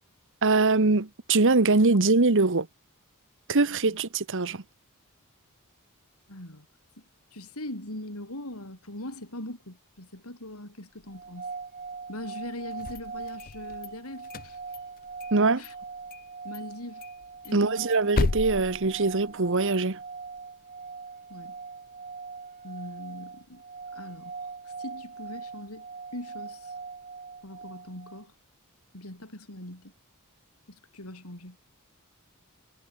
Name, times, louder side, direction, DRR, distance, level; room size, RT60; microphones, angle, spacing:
voice 1, 0.4-2.7 3.5-4.6 15.3-15.6 17.5-20.0, right 3 dB, 60° right, 1.3 m, -23 dB
voice 2, 6.3-6.7 7.0-7.1 7.3-11.5 12.1-14.6 15.6-15.8 16.4-17.0 17.4-17.9 21.3-21.6 22.6-23.6 23.9-24.3 24.7-25.9 26.1-26.7 27.4-28.3 28.9-29.9 30.7-31.6, left 1 dB, 80° left, 6.9 m, -41 dB
sound 1, 11.1-28.3, right 5 dB, 35° right, 4.1 m, -41 dB
sound 2, 12.7-13.9 14.2-15.4 15.6-15.7 16.1-16.3 16.5-16.6 17.0-19.6, left 3 dB, 45° left, 0.6 m, -33 dB
head